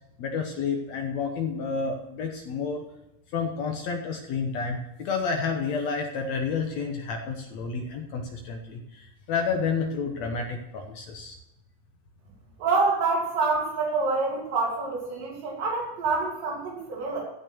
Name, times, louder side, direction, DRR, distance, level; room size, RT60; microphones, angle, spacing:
voice 1, 0.2-2.8 3.3-11.4, left 5 dB, 65° left, 3 dB, 2.0 m, -30 dB
voice 2, 12.6-17.2, right 3 dB, 70° right, -2 dB, 4.4 m, -26 dB
15.0 x 6.0 x 6.1 m, 0.93 s
omnidirectional pair, 3.9 m